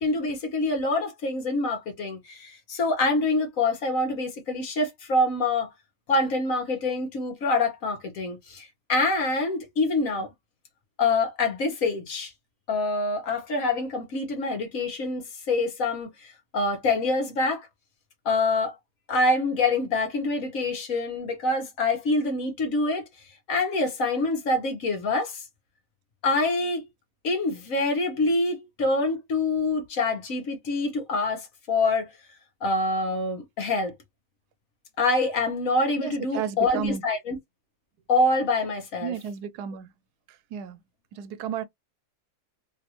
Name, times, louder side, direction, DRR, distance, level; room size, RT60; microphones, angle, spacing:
voice 1, 0.0-5.7 6.1-10.3 11.0-12.3 12.7-17.7 18.2-18.7 19.1-23.0 23.5-25.4 26.2-26.9 27.2-32.1 32.6-33.9 35.0-37.4 38.1-39.2, left 2 dB, 60° left, 1.4 m, -26 dB
voice 2, 36.0-37.0 39.0-39.9 40.5-40.8 41.1-41.6, right 8 dB, 85° right, 1.1 m, -32 dB
3.2 x 2.5 x 2.8 m
omnidirectional pair, 1.6 m